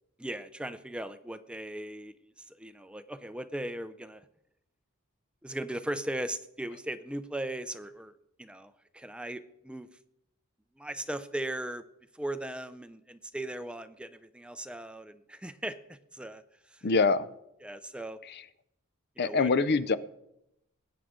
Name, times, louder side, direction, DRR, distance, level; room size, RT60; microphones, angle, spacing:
voice 1, 0.2-2.1 2.5-4.2 5.4-8.1 8.4-9.9 10.8-11.8 12.2-15.8 16.1-16.4 16.7-16.9 17.6-18.2 19.2-19.5, right 1 dB, 5° right, 10 dB, 0.5 m, -38 dB
voice 2, 16.8-17.3 18.3-18.4 19.2-20.0, left 4 dB, 50° left, 14 dB, 0.5 m, -24 dB
21.0 x 9.2 x 3.8 m, 0.81 s
head